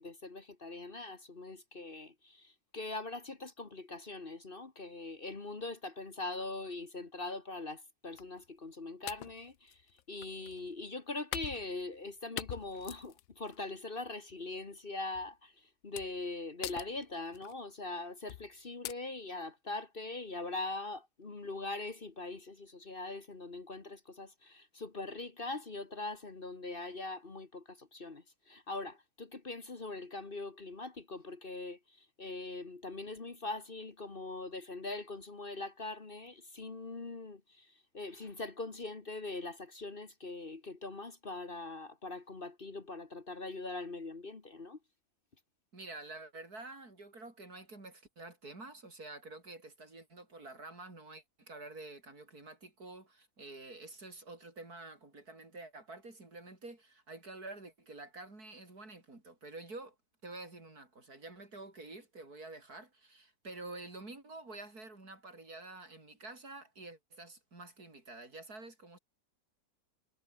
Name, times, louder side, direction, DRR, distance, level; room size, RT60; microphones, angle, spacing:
voice 1, 0.0-9.8 10.1-44.8, left 2 dB, 35° left, 1.8 m, -42 dB
sound 1, 8.2-8.4 9.1-10.6 11.3-12.1 12.4-13.6 14.1-14.3 15.1-15.3 16.0-16.3 16.6-17.5 18.3-18.5 18.8-18.9, left 14 dB, 70° left, 0.9 m, -43 dB
voice 2, 45.7-60.0 60.2-69.0, right 2 dB, 75° right, 5.8 m, -49 dB
omnidirectional pair, 1.6 m